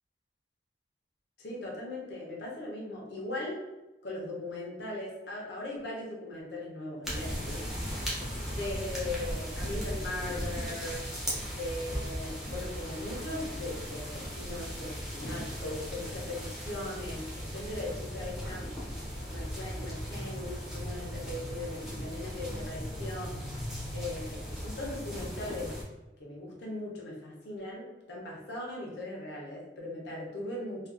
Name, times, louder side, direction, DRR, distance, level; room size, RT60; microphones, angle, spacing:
voice 1, 1.4-3.6 4.0-7.7 8.5-11.1 11.5-18.7 19.3-23.4 23.9-25.7 26.2-30.9, left 1 dB, 70° left, -3 dB, 0.7 m, -39 dB
sound 1, 7.0-25.8, equal, ahead, 0.5 m, -37 dB
2.4 x 2.2 x 2.4 m, 1.1 s
head